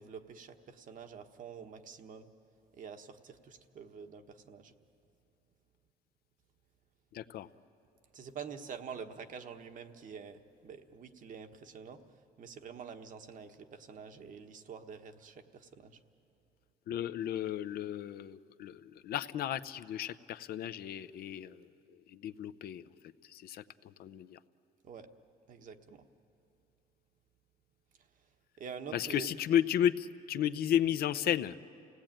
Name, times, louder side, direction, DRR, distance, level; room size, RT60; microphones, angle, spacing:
voice 1, 0.0-2.3 2.8-4.7 8.1-12.0 12.4-16.0 24.8-25.1 25.5-26.1 28.6-29.3, right 6 dB, 50° right, 7 dB, 1.3 m, -47 dB
voice 2, 7.1-7.5 16.9-21.6 22.1-22.8 23.3-24.4 28.9-31.6, left 10 dB, 65° left, 12 dB, 0.7 m, -33 dB
28.5 x 17.5 x 8.9 m, 2.7 s
cardioid pair, 110°, 17 cm